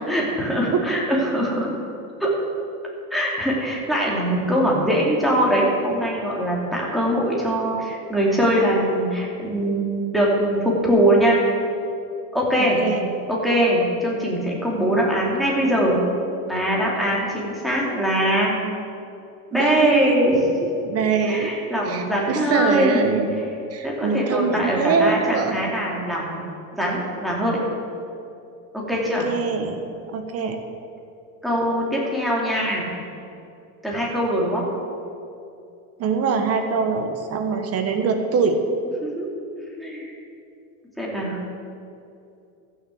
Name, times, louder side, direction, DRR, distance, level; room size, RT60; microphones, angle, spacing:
voice 1, 0.0-1.7 2.2-2.4 3.1-11.4 12.3-12.8 13.3-16.0 16.5-18.5 19.5-20.7 21.2-23.1 23.8-26.4 26.7-27.6 28.7-29.3 31.4-32.9 33.8-34.7 39.0-40.1 41.0-41.4, equal, ahead, -4 dB, 2.9 m, -22 dB
voice 2, 12.5-13.1 19.5-20.2 20.8-21.5 21.9-23.4 23.7-25.6 28.9-29.8 30.1-30.6 36.0-38.6, right 5 dB, 35° right, 6 dB, 1.3 m, -23 dB
14.0 x 6.8 x 7.8 m, 2.6 s
supercardioid pair, 135°, 42 cm